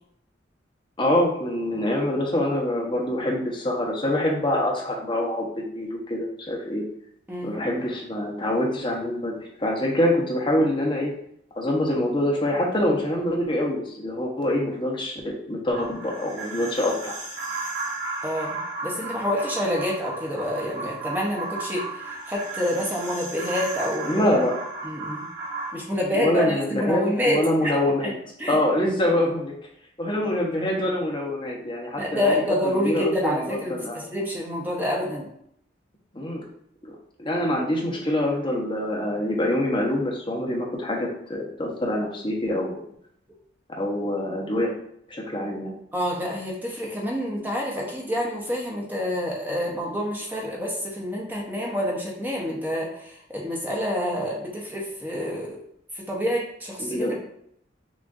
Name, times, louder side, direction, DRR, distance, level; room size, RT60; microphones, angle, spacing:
voice 1, 1.0-6.8 7.4-11.1 11.6-17.2 24.1-24.5 26.1-28.1 28.5-29.5 30.0-32.3 32.6-34.1 36.1-36.4 37.2-42.8 43.8-44.7 45.1-45.8 56.8-57.2, left 1 dB, 25° left, -2 dB, 0.9 m, -25 dB
sound 1, 15.7-25.7, right 3 dB, 80° right, 1.5 m, -34 dB
voice 2, 18.2-24.2 24.8-25.2 25.7-27.8 28.0-28.1 28.4-28.6 32.0-35.3 45.9-55.6 55.9-57.1, left 1 dB, 10° right, -3 dB, 0.8 m, -27 dB
6.0 x 2.5 x 2.5 m, 0.71 s
head